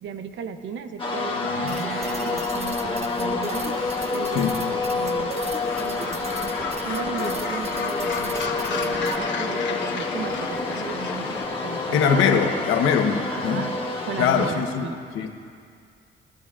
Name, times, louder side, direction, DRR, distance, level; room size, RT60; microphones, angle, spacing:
voice 1, 0.0-3.7 4.1-5.4 5.8-6.5 6.8-12.5 13.3-13.7 14.0-15.3, right 6 dB, 70° right, 8 dB, 0.8 m, -36 dB
sound 1, 1.0-14.5, left 3 dB, 25° left, 1.6 m, -28 dB
sound 2, 1.7-9.2, right 3 dB, 30° right, 0.8 m, -38 dB
Gull seagull, 5.6-11.4, left 5 dB, 65° left, 1.2 m, -33 dB
voice 2, 11.9-13.6 14.2-14.9 15.1-15.3, left 7 dB, 85° left, 4 dB, 1.2 m, -22 dB
22.5 x 12.0 x 2.5 m, 2.3 s
cardioid pair, 90°, 20 cm